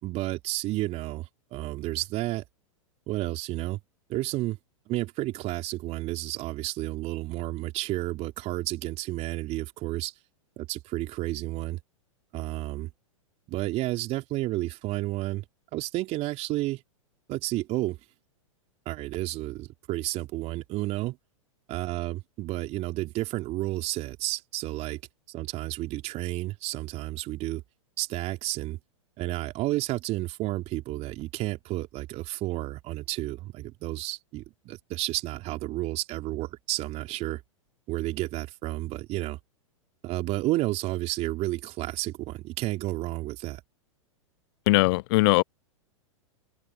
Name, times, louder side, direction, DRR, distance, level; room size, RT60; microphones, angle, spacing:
voice 1, 0.0-2.4 3.1-3.8 4.1-4.6 4.9-10.1 10.6-11.8 12.3-12.9 13.5-15.5 15.7-16.8 17.3-18.0 18.9-21.2 21.7-25.0 25.3-27.6 28.0-28.8 29.2-37.4 37.9-39.4 40.0-43.6, right 17 dB, 40° right, 3.6 m, -31 dB
voice 2, 44.7-45.4, left 22 dB, 50° left, 0.5 m, -20 dB
open air
hypercardioid pair, 110°, 17 cm